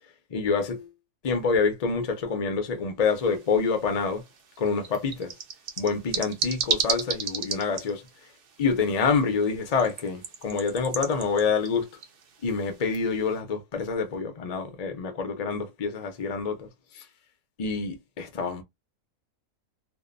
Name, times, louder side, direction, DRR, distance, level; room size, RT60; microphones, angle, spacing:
voice 1, 0.3-0.9 1.2-4.2 4.6-5.3 5.8-8.0 8.6-11.9 12.4-16.7 16.9-17.0 17.6-18.6, left 5 dB, 45° left, 0.5 m, -27 dB
sound 1, 3.1-13.4, right 6 dB, 70° right, 0.5 m, -36 dB
2.7 x 2.0 x 2.5 m
omnidirectional pair, 1.5 m